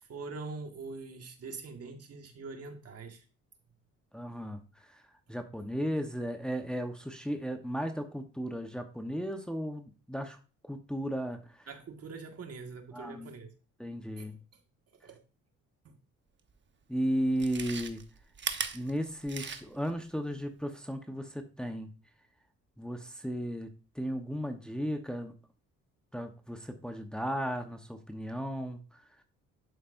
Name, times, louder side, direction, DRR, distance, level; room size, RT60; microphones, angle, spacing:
voice 1, 0.0-3.2 11.7-13.5 14.1-14.3 15.0-15.2 15.8-16.0, right 4 dB, 55° right, 5 dB, 1.7 m, -43 dB
voice 2, 4.1-10.4 10.6-11.7 12.9-13.3 13.8-14.4 16.9-18.0 18.7-21.9 22.8-25.3 26.1-29.2, equal, 5° left, 5 dB, 1.0 m, -35 dB
Chewing mastication, 16.5-16.6 17.3-19.9 20.3-20.4, right 6 dB, 40° right, 1.0 m, -38 dB
11.5 x 5.2 x 2.6 m, 0.34 s
cardioid pair, 90°, 30 cm